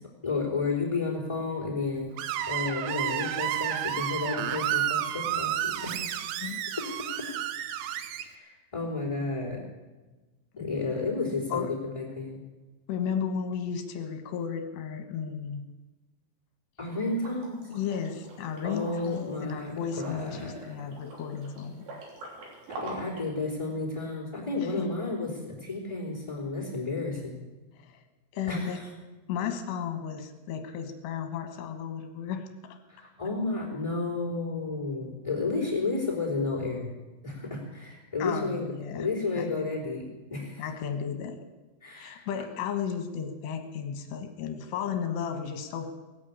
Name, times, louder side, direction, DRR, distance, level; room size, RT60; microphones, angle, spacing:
voice 1, 0.2-6.1 8.2-9.6 10.6-12.4 16.8-17.6 18.6-20.8 22.7-27.4 28.5-28.9 32.9-36.9 37.2-40.7 41.8-42.2, left 3 dB, 5° left, -9 dB, 3.1 m, -32 dB
Screech, 2.2-8.2, right 11 dB, 85° right, 2.3 m, -31 dB
voice 2, 10.6-10.9 11.5-11.7 12.9-15.6 17.7-21.8 24.6-24.9 27.8-28.0 28.3-28.8 29.3-32.8 38.2-39.1 39.4-39.7 40.6-41.4 41.9-45.9, left 7 dB, 70° left, 6 dB, 3.3 m, -34 dB
Liquid, 17.1-23.3, right 2 dB, 65° right, 5.4 m, -45 dB
19.5 x 8.5 x 8.6 m, 1.2 s
omnidirectional pair, 5.5 m